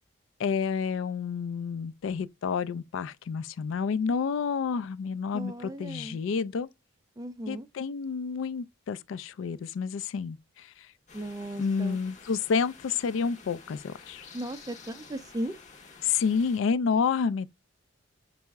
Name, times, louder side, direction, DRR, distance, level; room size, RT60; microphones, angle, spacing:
voice 1, 0.4-6.7 7.5-10.9 11.6-14.2 16.0-17.5, left 5 dB, 65° left, 0.3 m, -29 dB
voice 2, 5.3-6.2 7.2-7.7 11.1-12.0 14.3-15.6, right 1 dB, 15° right, 0.3 m, -36 dB
sound 1, 11.1-16.6, left 4 dB, 35° left, 0.6 m, -50 dB
5.4 x 2.0 x 3.4 m
head